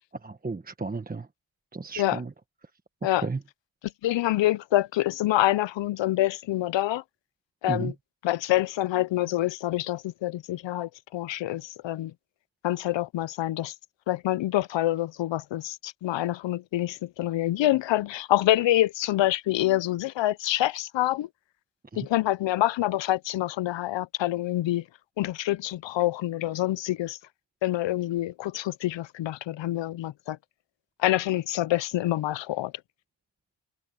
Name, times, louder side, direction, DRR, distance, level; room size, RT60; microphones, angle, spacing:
voice 1, 0.2-1.3 1.7-2.3 3.2-3.4 7.7-7.9 21.9-22.1, right 4 dB, 20° right, 1.2 m, -33 dB
voice 2, 4.0-7.0 7.6-7.9 8.2-12.1 12.6-13.7 14.1-21.3 22.0-24.8 25.2-27.2 27.6-30.4 31.0-32.7, left 15 dB, 60° left, 0.6 m, -26 dB
cardioid pair, 90°, 49 cm